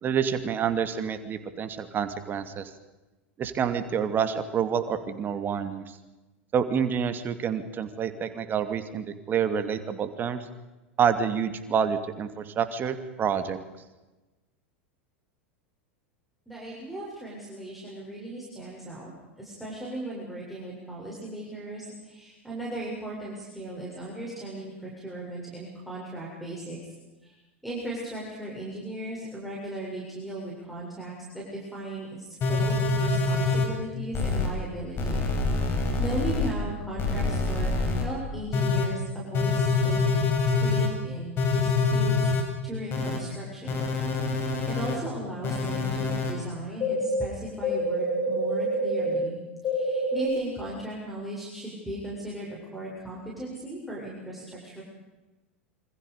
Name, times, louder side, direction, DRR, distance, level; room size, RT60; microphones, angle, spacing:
voice 1, 0.0-2.7 3.4-5.8 6.5-10.5 11.0-13.6, right 7 dB, 30° right, 9 dB, 2.6 m, -28 dB
voice 2, 16.5-26.9 27.2-27.4 27.6-35.3 36.0-40.0 40.5-42.3 42.6-43.8 44.1-54.8, right 1 dB, ahead, -6 dB, 7.5 m, -37 dB
sound 1, 32.4-33.6 34.1-34.5 35.0-36.5 37.0-38.0 38.5-38.8 39.3-40.9 41.4-42.4 42.9-43.2 43.7-44.9 45.4-46.3 46.8-47.1 47.6-49.1 49.6-50.3, left 3 dB, 35° left, 7.1 m, -26 dB
27.5 x 26.5 x 5.1 m, 1.1 s
figure-of-eight pair, 85°, 7 cm